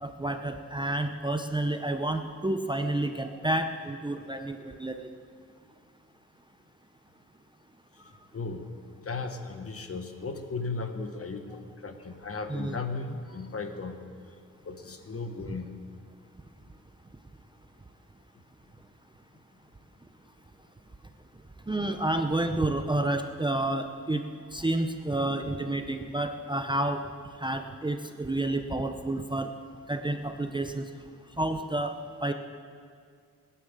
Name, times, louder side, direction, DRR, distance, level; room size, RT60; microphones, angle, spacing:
voice 1, 0.0-4.9 12.5-12.8 21.7-24.2 24.5-27.0 27.4-29.5 29.9-30.8 31.4-31.9 32.2-32.3, right 1 dB, 15° right, 6 dB, 0.6 m, -29 dB
voice 2, 9.0-14.0 14.6-15.7, left 3 dB, 45° left, 7 dB, 1.2 m, -36 dB
17.5 x 10.0 x 7.5 m, 2.1 s
wide cardioid pair, 160°, 33 cm